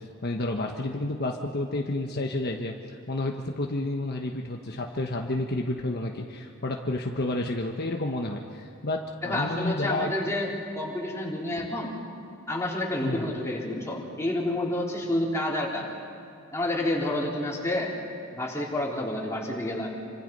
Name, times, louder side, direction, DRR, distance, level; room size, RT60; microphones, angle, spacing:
voice 1, 0.0-10.3 13.0-13.3, left 2 dB, 50° left, 1 dB, 1.3 m, -30 dB
voice 2, 9.2-10.5 10.7-11.9 12.5-15.9 16.5-17.9 18.3-19.9, left 1 dB, 15° left, -4 dB, 4.0 m, -29 dB
28.0 x 25.5 x 5.5 m, 2.5 s
head